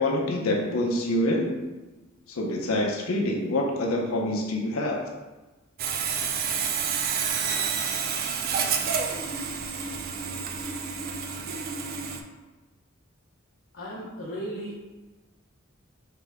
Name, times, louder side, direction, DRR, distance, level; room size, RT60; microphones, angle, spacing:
voice 1, 0.0-1.5 2.3-5.0, left 1 dB, 85° left, 0 dB, 0.6 m, -26 dB
Sawing, 5.8-12.2, right 6 dB, 45° right, 0.4 m, -29 dB
voice 2, 13.7-14.8, equal, 65° left, -8 dB, 0.9 m, -35 dB
3.7 x 3.3 x 3.4 m, 1.2 s
head